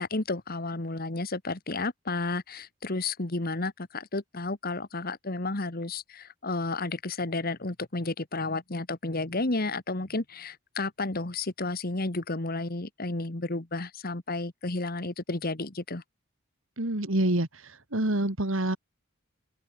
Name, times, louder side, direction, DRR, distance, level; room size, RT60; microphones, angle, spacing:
voice 1, 0.0-16.0, left 2 dB, 45° left, 1.6 m, -32 dB
voice 2, 16.8-18.8, right 1 dB, 65° right, 2.7 m, -27 dB
open air
head